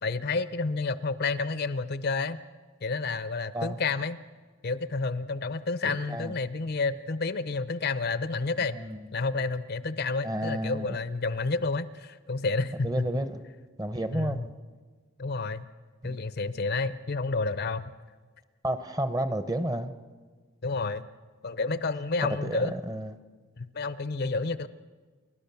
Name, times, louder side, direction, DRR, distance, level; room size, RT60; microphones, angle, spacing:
voice 1, 0.0-2.4 2.8-4.2 4.6-8.8 9.1-13.1 14.1-14.5 15.2-15.6 16.0-17.9 20.6-21.1 21.4-22.7 23.6-24.7, left 3 dB, 50° left, 15 dB, 0.6 m, -30 dB
voice 2, 5.8-6.3 8.7-9.0 10.2-11.0 12.8-13.4 13.8-14.5 16.0-16.2 18.6-19.9 22.4-23.2, right 1 dB, 15° right, 11 dB, 0.8 m, -31 dB
30.0 x 12.5 x 7.0 m, 1.4 s
head